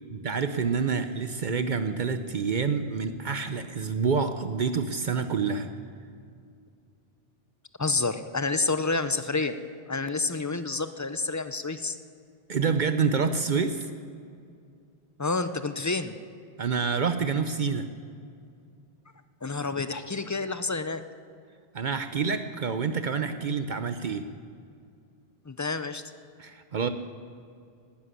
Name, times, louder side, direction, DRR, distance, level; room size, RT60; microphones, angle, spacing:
voice 1, 0.0-5.7 12.5-13.9 16.6-17.9 21.7-24.3 26.4-26.9, right 5 dB, 55° right, 9 dB, 0.7 m, -27 dB
voice 2, 7.8-9.6 9.9-12.0 15.2-16.1 19.4-21.0 25.5-26.0, left 3 dB, 25° left, 11 dB, 0.4 m, -29 dB
12.0 x 10.5 x 9.7 m, 2.4 s
omnidirectional pair, 1.0 m